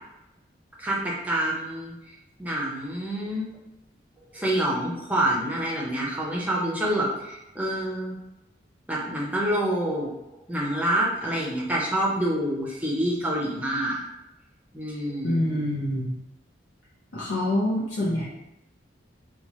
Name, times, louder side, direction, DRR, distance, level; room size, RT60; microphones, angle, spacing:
voice 1, 0.8-1.9 2.4-3.5 4.3-8.2 8.9-10.1 10.5-14.0 14.7-15.4, right 1 dB, 10° right, -4 dB, 0.6 m, -27 dB
voice 2, 15.2-16.2 17.1-18.3, left 1 dB, 90° left, -7 dB, 0.7 m, -26 dB
2.9 x 2.3 x 3.0 m, 0.91 s
head